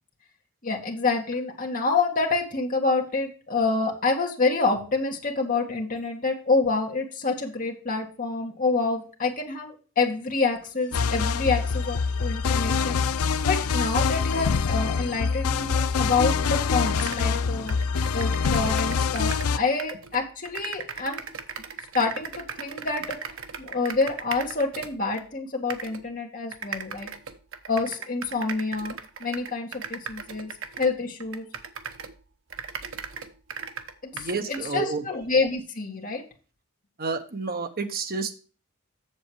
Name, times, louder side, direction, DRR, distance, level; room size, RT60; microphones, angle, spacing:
voice 1, 0.6-13.0 13.5-17.8 18.1-21.2 21.9-23.2 23.6-27.1 27.7-30.5 30.8-31.5 34.0-36.2, left 4 dB, 40° left, 0 dB, 2.0 m, -27 dB
sound 1, 10.9-19.6, left 5 dB, 85° left, 0.5 m, -25 dB
sound 2, 16.5-16.6 16.8-19.5 19.8-25.2 25.7-26.0 26.5-32.2 32.5-34.7, right 6 dB, 60° right, 1.0 m, -38 dB
voice 2, 34.1-35.1 37.0-38.4, right 4 dB, 45° right, 7 dB, 1.2 m, -30 dB
7.8 x 7.1 x 4.8 m, 0.36 s
head